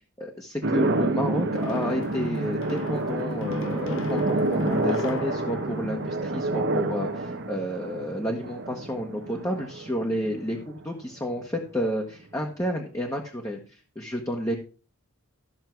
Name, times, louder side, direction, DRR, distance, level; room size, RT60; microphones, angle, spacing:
voice 1, 0.2-14.6, equal, 15° left, 0 dB, 1.3 m, -30 dB
sound 1, 0.6-11.0, right 2 dB, 55° right, 1.0 m, -29 dB
sound 2, 1.5-6.9, left 3 dB, 60° left, 1.2 m, -39 dB
14.0 x 6.5 x 4.6 m, 0.35 s
head